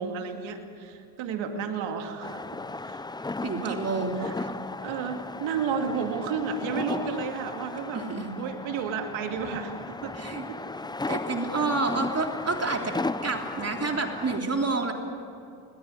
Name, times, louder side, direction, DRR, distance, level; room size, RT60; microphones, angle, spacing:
voice 1, 0.0-2.4 2.8-3.0 3.6-3.8 4.2-4.5 4.8-8.0 8.4-10.2 10.5-10.6 11.0-11.3, right 6 dB, 80° right, 5 dB, 2.6 m, -32 dB
sound 1, 2.2-14.4, left 3 dB, 10° left, 0.5 m, -36 dB
voice 2, 3.4-4.5 7.9-8.3 10.2-10.4 11.1-12.9 13.2-14.9, right 3 dB, 30° right, 2 dB, 3.5 m, -29 dB
21.5 x 20.0 x 9.8 m, 2.7 s
supercardioid pair, 65°, 45 cm